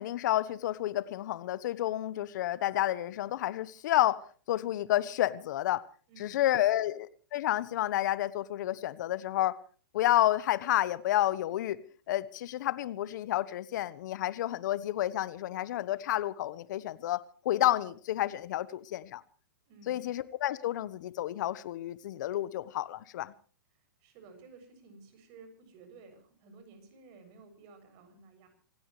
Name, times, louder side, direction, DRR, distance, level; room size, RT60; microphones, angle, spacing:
voice 1, 0.0-5.8 6.2-9.6 9.9-11.8 12.1-19.2 19.9-23.3, left 13 dB, 60° left, 1.3 m, -30 dB
voice 2, 6.1-6.9 19.7-20.1 24.0-28.6, right 4 dB, 45° right, 7.5 m, -54 dB
26.0 x 17.0 x 3.2 m
hypercardioid pair, 120°, 11 cm